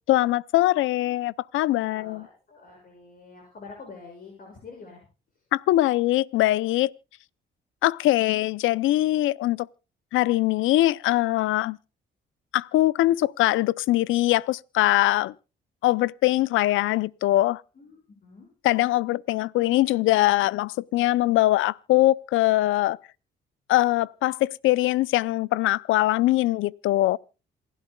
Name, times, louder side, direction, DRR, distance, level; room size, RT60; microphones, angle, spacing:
voice 1, 0.1-2.3 5.5-6.9 7.8-9.7 10.1-11.8 12.5-15.3 15.8-17.6 18.6-23.0 23.7-27.2, left 16 dB, 85° left, 0.6 m, -22 dB
voice 2, 1.9-5.0 17.7-18.5, left 4 dB, 45° left, 6.8 m, -46 dB
27.5 x 12.0 x 2.3 m
cardioid pair, 90°, 20 cm